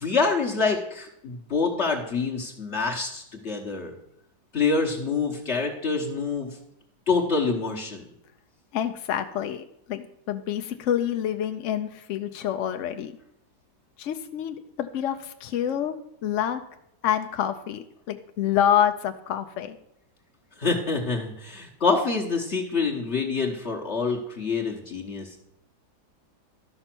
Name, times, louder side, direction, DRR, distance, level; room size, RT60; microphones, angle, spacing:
voice 1, 0.0-3.9 4.5-6.6 7.1-8.0 20.6-25.4, left 4 dB, 45° left, 0 dB, 1.2 m, -26 dB
voice 2, 8.7-13.2 14.0-16.0 16.2-16.6 17.0-19.8, left 10 dB, 65° left, 7 dB, 0.7 m, -27 dB
12.5 x 5.5 x 5.9 m, 0.78 s
omnidirectional pair, 1.8 m